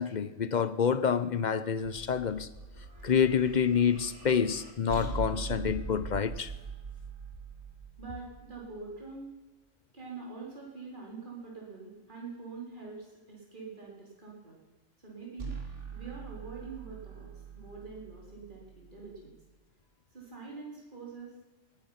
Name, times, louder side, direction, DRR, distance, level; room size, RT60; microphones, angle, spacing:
voice 1, 0.0-2.5 3.0-6.5, left 7 dB, 45° left, 0.7 m, -28 dB
sound 1, 1.8-9.1 15.4-19.5, right 4 dB, 60° right, 2.6 m, -42 dB
voice 2, 8.0-9.4 9.9-14.6 15.0-15.6 15.9-19.3 20.1-21.3, right 4 dB, 40° right, 4.2 m, -45 dB
19.5 x 11.5 x 5.9 m
omnidirectional pair, 1.3 m